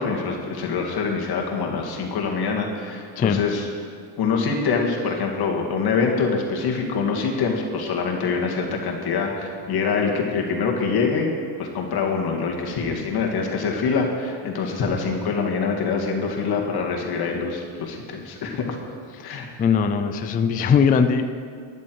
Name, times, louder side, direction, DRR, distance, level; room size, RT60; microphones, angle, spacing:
voice 1, 0.0-3.9 4.2-11.3 11.6-18.8 19.2-19.5, left 5 dB, 45° left, 0 dB, 2.1 m, -25 dB
voice 2, 19.6-21.3, left 6 dB, 20° left, 8 dB, 0.3 m, -20 dB
12.0 x 10.5 x 4.7 m, 2.2 s
cardioid pair, 115°, 50 cm